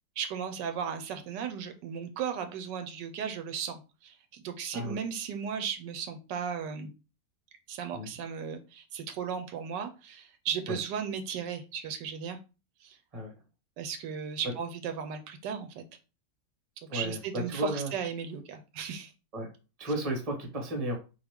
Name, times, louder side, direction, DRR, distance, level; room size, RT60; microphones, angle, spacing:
voice 1, 0.2-6.9 7.7-12.4 12.8-13.0 13.8-15.8 16.9-19.1, right 7 dB, 85° right, 7 dB, 1.3 m, -36 dB
voice 2, 16.9-17.9 19.3-19.5 19.8-21.0, equal, 25° right, 1 dB, 1.0 m, -33 dB
3.8 x 2.8 x 3.5 m, 0.31 s
omnidirectional pair, 1.9 m